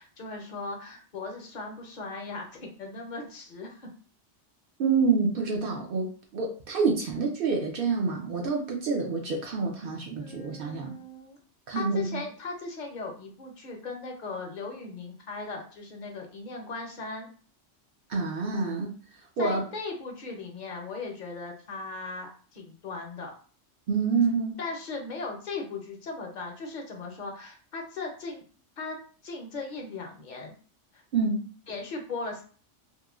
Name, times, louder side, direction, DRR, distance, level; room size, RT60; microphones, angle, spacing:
voice 1, 0.0-3.9 10.2-11.4 11.7-17.3 19.4-23.3 24.6-28.4 28.8-29.0 29.2-30.5 30.9-31.0 31.7-32.4, left 3 dB, 50° left, 1 dB, 0.6 m, -38 dB
voice 2, 4.8-10.9 11.7-12.2 18.1-18.9 19.4-19.6 23.9-24.6 31.1-31.5, right 4 dB, 60° right, 1 dB, 0.6 m, -27 dB
3.0 x 2.1 x 2.3 m, 0.42 s
omnidirectional pair, 1.2 m